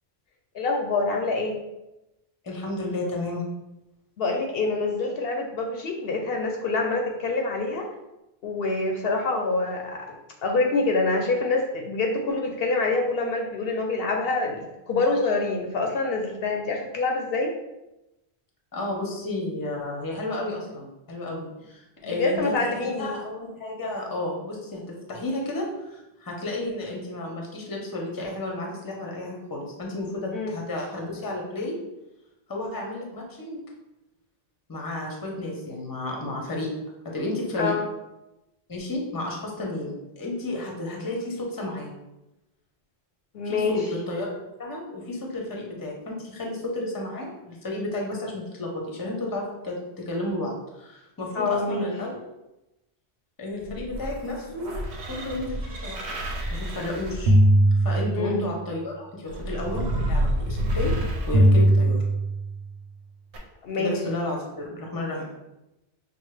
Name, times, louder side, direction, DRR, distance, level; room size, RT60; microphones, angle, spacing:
voice 1, 0.5-1.6 4.2-7.9 8.4-10.1 10.4-17.5 22.0-23.1 30.3-30.6 37.6-37.8 43.3-43.8 51.3-51.9 58.2-58.5 63.6-63.9, left 3 dB, 70° left, 2 dB, 0.7 m, -26 dB
voice 2, 2.4-3.4 18.7-31.8 32.5-33.6 34.7-36.7 37.0-37.7 38.7-41.9 43.4-44.3 44.6-52.1 53.4-54.7 55.1-56.2 56.5-57.4 57.8-60.9 61.3-62.0 63.8-65.2, left 2 dB, 25° left, 0 dB, 0.7 m, -32 dB
sound 1, 53.6-58.5 59.3-62.6 63.3-63.4, right 1 dB, 90° right, 1.0 m, -23 dB
5.9 x 2.1 x 3.2 m, 0.96 s
omnidirectional pair, 1.1 m